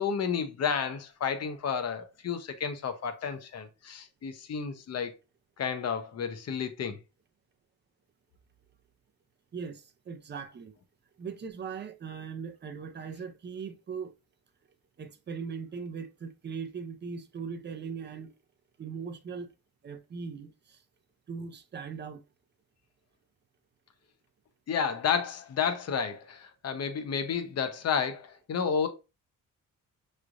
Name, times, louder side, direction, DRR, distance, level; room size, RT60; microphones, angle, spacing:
voice 1, 0.0-5.2 5.6-7.0 24.7-28.9, left 6 dB, 45° left, 0.8 m, -31 dB
voice 2, 9.5-10.7 11.2-14.1 15.0-18.3 18.8-19.5 19.8-20.8 21.3-22.2, right 6 dB, 30° right, 0.5 m, -39 dB
5.9 x 3.2 x 2.5 m
wide cardioid pair, 150°, 34 cm